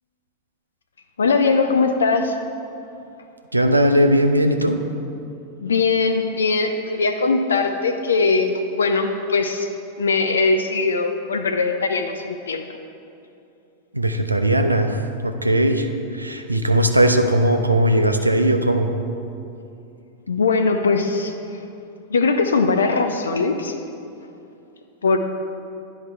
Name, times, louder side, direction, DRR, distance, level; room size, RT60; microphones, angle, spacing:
voice 1, 1.2-2.4 5.6-9.7 10.0-12.6 20.3-21.4 22.1-23.8 25.0-25.2, left 4 dB, 70° left, 6 dB, 0.4 m, -20 dB
voice 2, 3.5-4.8 13.9-15.9 16.1-18.9, right 1 dB, 85° right, 6 dB, 0.4 m, -18 dB
10.5 x 4.7 x 3.3 m, 2.6 s
figure-of-eight pair, 90°, 0 cm